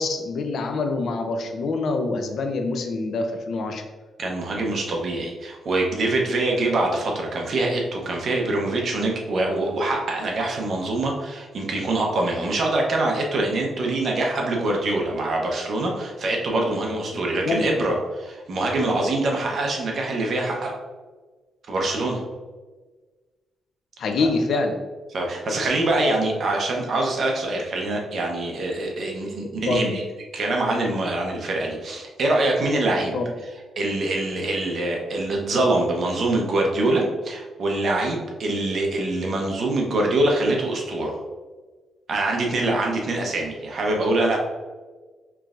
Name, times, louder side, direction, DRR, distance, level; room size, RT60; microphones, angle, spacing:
voice 1, 0.0-3.8 17.1-17.6 24.0-24.8 29.7-30.0 33.1-33.3, left 3 dB, 60° left, 5 dB, 0.5 m, -25 dB
voice 2, 4.2-20.7 21.7-22.2 24.2-24.3 25.1-30.0 30.3-33.1 33.8-41.2 42.1-44.4, right 2 dB, 50° right, 0 dB, 0.8 m, -24 dB
4.5 x 3.2 x 2.5 m, 1.3 s
cardioid pair, 140°, 0 cm